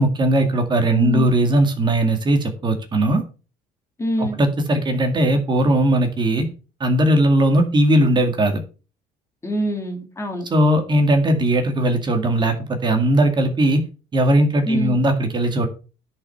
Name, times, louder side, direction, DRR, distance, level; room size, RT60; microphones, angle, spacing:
voice 1, 0.0-3.2 4.2-6.5 6.8-8.6 10.5-13.8 14.1-15.7, right 1 dB, 25° right, 5 dB, 2.0 m, -18 dB
voice 2, 0.9-1.3 4.0-4.4 9.4-10.4 14.7-15.0, equal, 15° left, 4 dB, 2.5 m, -24 dB
10.5 x 5.6 x 5.7 m, 0.33 s
cardioid pair, 145°, 17 cm